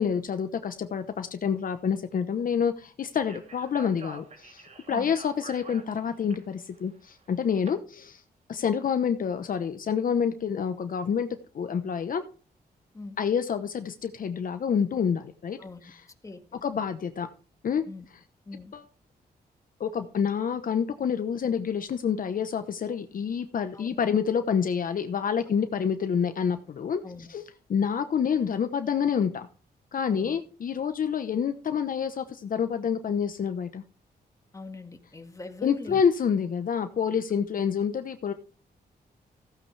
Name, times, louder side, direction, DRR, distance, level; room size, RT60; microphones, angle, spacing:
voice 1, 0.0-8.2 8.5-11.3 11.5-12.2 13.2-16.0 16.6-17.3 17.6-17.8 18.7-18.8 19.8-27.4 27.7-29.5 29.9-33.8 35.6-38.3, left 7 dB, 55° left, 9 dB, 1.0 m, -28 dB
Speech, 3.1-7.7, right 3 dB, 45° right, 3.0 m, -47 dB
voice 2, 16.2-16.6 17.9-18.1 18.5-18.7 23.7-23.9 27.0-27.3 30.1-30.3 34.5-36.0, left 3 dB, 20° left, 6 dB, 1.8 m, -42 dB
15.5 x 8.8 x 3.3 m, 0.37 s
cardioid pair, 115°, 17 cm